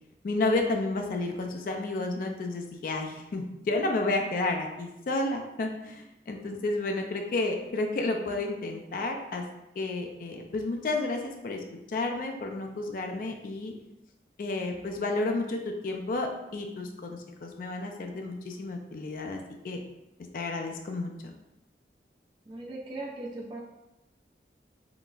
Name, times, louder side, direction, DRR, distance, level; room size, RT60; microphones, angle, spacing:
voice 1, 0.2-9.4 9.8-11.6 11.9-13.7 14.4-19.8 20.3-21.3, left 2 dB, 50° left, 3 dB, 0.3 m, -31 dB
voice 2, 22.5-23.6, right 2 dB, 25° right, -3 dB, 0.3 m, -38 dB
3.8 x 2.0 x 2.3 m, 0.92 s
head